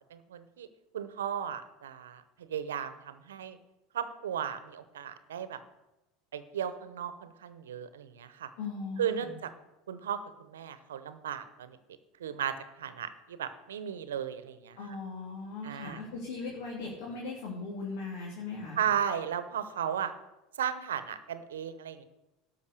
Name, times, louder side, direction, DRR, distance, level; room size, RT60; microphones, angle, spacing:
voice 1, 0.1-0.7 0.9-3.6 3.9-5.6 6.3-8.5 9.0-9.5 9.9-11.8 12.2-14.8 15.6-16.0 18.8-20.1 20.6-22.0, right 8 dB, 85° right, 12 dB, 0.9 m, -35 dB
voice 2, 8.6-9.3 14.8-18.8, left 4 dB, 65° left, -3 dB, 2.9 m, -39 dB
12.0 x 5.6 x 6.8 m, 0.98 s
hypercardioid pair, 85°, 0 cm